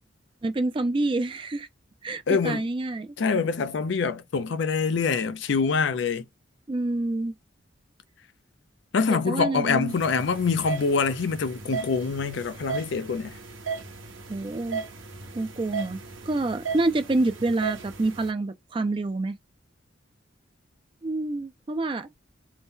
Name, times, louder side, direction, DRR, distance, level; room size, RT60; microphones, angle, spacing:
voice 1, 0.4-1.7 2.0-3.1 6.7-7.3 9.1-9.9 14.3-14.8 15.3-16.0 16.3-19.4 21.0-22.1, right 2 dB, 25° right, 0.4 m, -27 dB
voice 2, 2.3-2.7 3.2-6.3 8.9-13.4, left 5 dB, 65° left, 0.4 m, -25 dB
sound 1, 9.9-18.3, right 5 dB, 80° right, 0.9 m, -37 dB
2.7 x 2.1 x 3.6 m
head